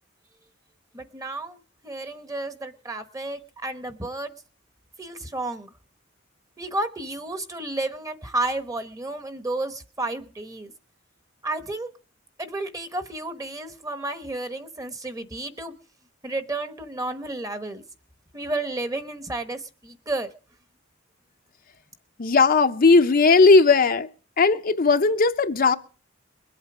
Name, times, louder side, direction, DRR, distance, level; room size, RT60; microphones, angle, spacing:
voice 1, 0.9-4.3 5.0-5.7 6.6-10.7 11.4-11.9 12.4-15.7 16.2-17.8 18.3-20.3, right 2 dB, 15° right, 1.1 m, -32 dB
voice 2, 22.2-24.1 24.4-25.8, left 4 dB, 45° left, 0.7 m, -17 dB
22.0 x 8.2 x 4.9 m
head